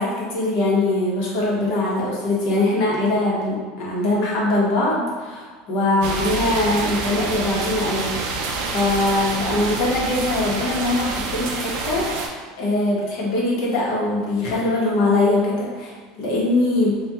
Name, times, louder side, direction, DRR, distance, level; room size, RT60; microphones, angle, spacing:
voice 1, 0.0-8.1 8.6-12.3 12.6-17.0, left 2 dB, 50° left, -4 dB, 0.8 m, -22 dB
sound 1, 6.0-12.3, right 3 dB, 55° right, 0.4 m, -27 dB
3.4 x 2.2 x 2.7 m, 1.5 s
cardioid pair, 175°, 0 cm